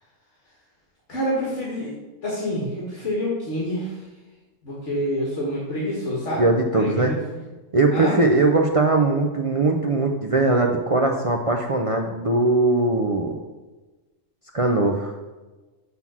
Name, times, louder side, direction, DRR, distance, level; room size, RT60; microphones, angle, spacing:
voice 1, 1.1-1.9 2.2-4.1 4.6-7.4 7.9-8.2, equal, 60° left, -5 dB, 1.8 m, -27 dB
voice 2, 6.4-7.1 7.7-13.4 14.5-15.2, right 2 dB, 50° right, 2 dB, 0.4 m, -20 dB
5.8 x 5.7 x 6.1 m, 1.2 s
omnidirectional pair, 1.4 m